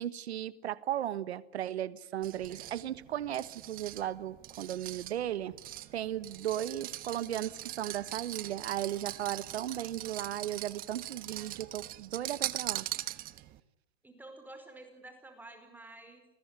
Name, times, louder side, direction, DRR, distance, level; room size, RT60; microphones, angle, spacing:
voice 1, 0.0-5.6 5.9-12.9, right 11 dB, 90° right, 1.4 m, -36 dB
sound 1, 2.2-13.6, right 15 dB, 30° right, 1.1 m, -41 dB
voice 2, 14.0-16.2, right 2 dB, 5° right, 4.8 m, -50 dB
29.0 x 20.5 x 9.7 m
supercardioid pair, 145°, 31 cm